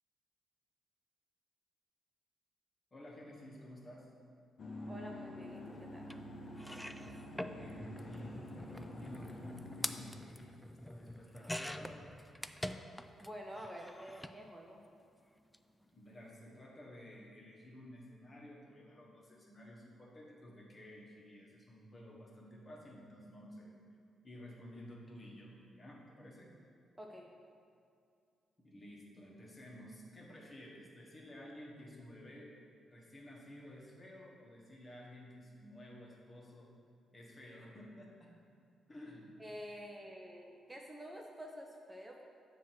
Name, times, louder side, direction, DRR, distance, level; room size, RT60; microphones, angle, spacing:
voice 1, 2.9-4.1 7.3-8.4 8.7-12.1 15.9-23.7 24.2-26.5 28.6-32.5 32.9-36.7 37.1-38.3 38.9-39.4, left 1 dB, 35° left, -3 dB, 1.5 m, -53 dB
sound 1, 4.6-10.0, left 1 dB, 55° left, 0.8 m, -48 dB
voice 2, 4.9-6.1 13.2-14.8 27.0-27.3 39.4-42.2, equal, 15° right, 0 dB, 0.7 m, -49 dB
sound 2, 6.1-6.2 6.6-13.3 13.6-14.4 15.4-15.6 15.8-15.9, left 1 dB, 5° left, 0.3 m, -45 dB
7.3 x 2.9 x 5.9 m, 2.4 s
supercardioid pair, 50°, 0 cm